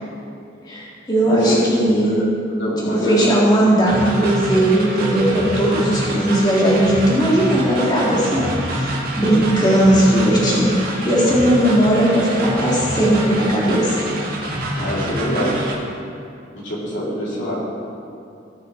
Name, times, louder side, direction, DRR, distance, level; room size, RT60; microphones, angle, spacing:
voice 1, 0.7-2.1 2.8-14.0, right 1 dB, 20° left, -6 dB, 1.9 m, -17 dB
voice 2, 1.2-1.6 2.0-2.2 2.6-3.3 3.8-3.9 14.7-15.7 16.5-17.5, equal, 75° left, -6 dB, 2.9 m, -24 dB
sound 1, 3.9-15.7, right 1 dB, 55° right, 2.0 m, -26 dB
18.0 x 6.3 x 3.7 m, 2.5 s
head